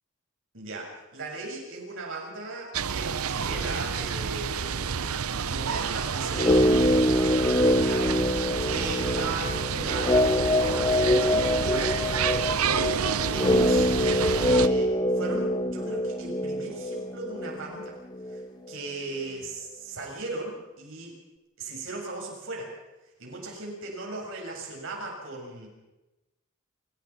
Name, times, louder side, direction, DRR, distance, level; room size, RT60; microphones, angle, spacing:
voice 1, 0.5-7.0 7.7-8.1 8.6-12.6 13.3-17.9 18.3-18.4 18.7-21.1 21.6-22.7 23.2-25.7, right 2 dB, 65° right, -1 dB, 7.5 m, -37 dB
sound 1, 2.7-14.7, right 6 dB, 80° right, 0.8 m, -29 dB
sound 2, 6.3-18.5 18.7-18.8, left 1 dB, 20° left, 0.7 m, -25 dB
28.5 x 16.0 x 5.9 m, 1.0 s
head